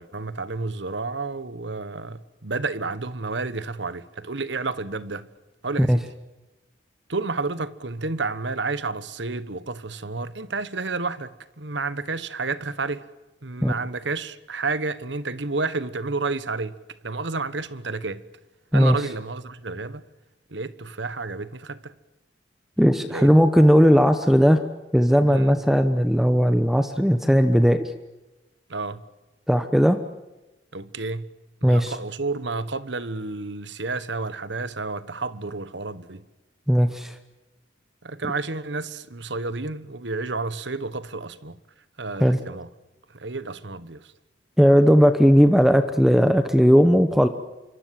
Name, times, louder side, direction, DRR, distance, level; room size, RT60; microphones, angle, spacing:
voice 1, 0.0-5.3 5.6-6.1 7.1-13.1 13.4-16.8 17.0-18.2 18.7-20.0 20.5-21.9 23.1-23.3 25.3-25.5 28.7-29.0 30.7-31.3 31.6-36.2 38.0-41.6 42.0-42.7 43.1-44.1, right 3 dB, 75° right, 1.3 m, -30 dB
voice 2, 22.8-24.6 24.9-27.9 29.5-30.0 31.6-31.9 36.7-37.1 42.2-42.4 44.6-47.3, equal, ahead, 1.0 m, -17 dB
26.5 x 24.0 x 7.8 m
head